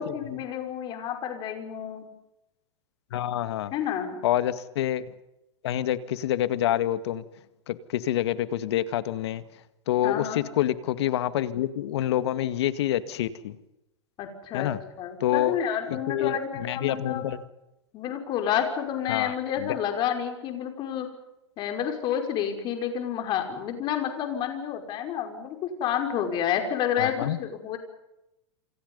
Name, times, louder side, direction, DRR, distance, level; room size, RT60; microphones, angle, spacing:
voice 1, 0.0-2.1 3.7-4.2 10.0-10.4 14.2-17.3 17.9-21.1 21.6-27.8, left 9 dB, 30° left, 5 dB, 5.5 m, -30 dB
voice 2, 3.1-3.7 4.2-5.0 5.6-7.2 7.7-9.4 9.9-10.3 10.6-13.5 14.5-14.8 15.2-15.6 15.9-16.3 16.6-17.4 19.1-19.3 27.0-27.4, left 12 dB, 65° left, 12 dB, 2.1 m, -27 dB
28.5 x 28.0 x 5.6 m, 0.91 s
supercardioid pair, 150°, 15 cm